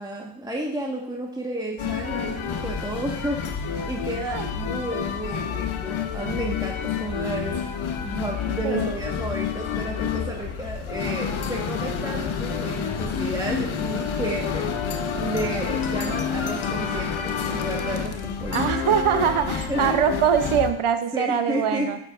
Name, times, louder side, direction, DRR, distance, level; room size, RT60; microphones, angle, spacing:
voice 1, 0.0-7.6 8.0-14.7 15.2-18.6 19.7-20.0 21.1-21.9, right 1 dB, 10° right, -2 dB, 1.5 m, -32 dB
sound 1, 1.8-20.7, left 7 dB, 75° left, 0.9 m, -29 dB
voice 2, 18.5-22.0, right 8 dB, 85° right, 9 dB, 0.8 m, -23 dB
9.1 x 7.7 x 2.5 m, 0.71 s
cardioid pair, 45°, 49 cm